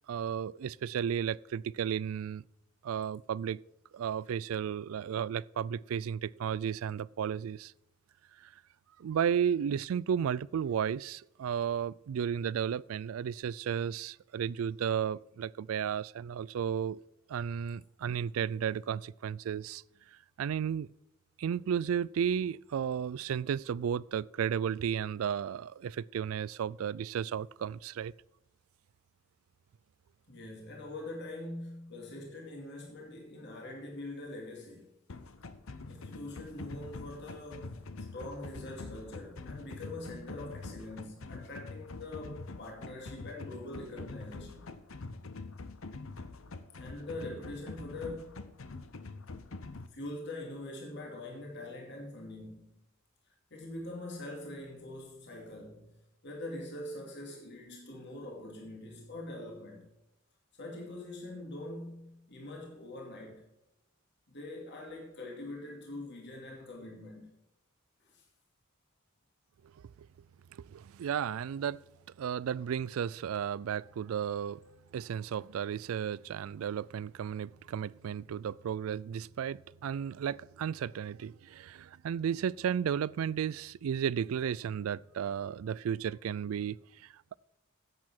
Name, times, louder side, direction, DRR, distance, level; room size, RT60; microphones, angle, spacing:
voice 1, 0.1-2.4 2.8-3.6 3.9-7.7 8.4-8.5 9.0-17.0 17.3-19.8 20.4-20.9 21.4-28.1 70.5-71.8 72.2-74.6 74.9-87.4, right 8 dB, 85° right, 0.3 m, -33 dB
voice 2, 30.3-34.9 35.8-37.7 38.0-44.7 46.8-48.6 49.9-52.8 53.5-56.0 56.2-59.9 60.6-63.5 64.3-67.3 68.0-68.2, left 1 dB, 55° left, 2.4 m, -43 dB
sound 1, 35.1-49.9, left 3 dB, 80° left, 0.8 m, -45 dB
10.5 x 8.4 x 4.4 m
head